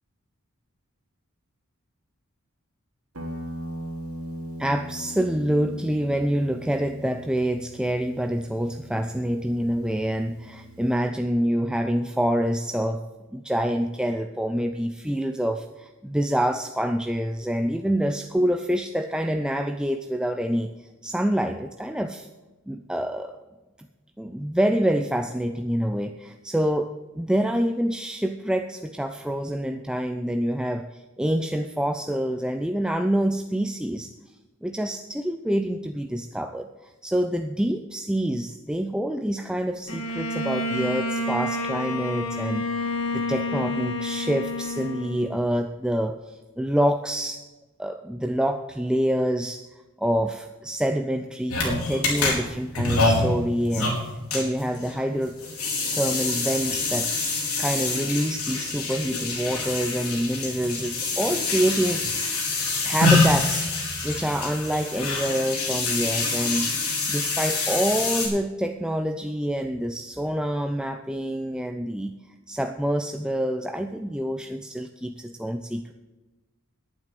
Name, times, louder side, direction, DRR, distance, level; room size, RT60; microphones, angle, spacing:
Guitar, 3.1-11.0, equal, 85° right, 2.4 m, -40 dB
voice 1, 4.6-13.0 13.3-20.7 21.0-22.3 22.7-23.3 24.2-34.1 34.6-42.7 43.1-47.4 47.8-49.6 50.0-54.0 54.3-55.4 55.9-57.1 57.6-62.2 62.8-63.7 64.0-66.7 67.1-72.1 72.5-75.9, equal, 5° right, 6 dB, 0.4 m, -26 dB
Bowed string instrument, 39.9-45.6, left 2 dB, 75° left, 1.8 m, -29 dB
sound 1, 51.5-68.3, left 3 dB, 90° left, 4.6 m, -26 dB
10.5 x 9.1 x 7.7 m, 1.1 s
head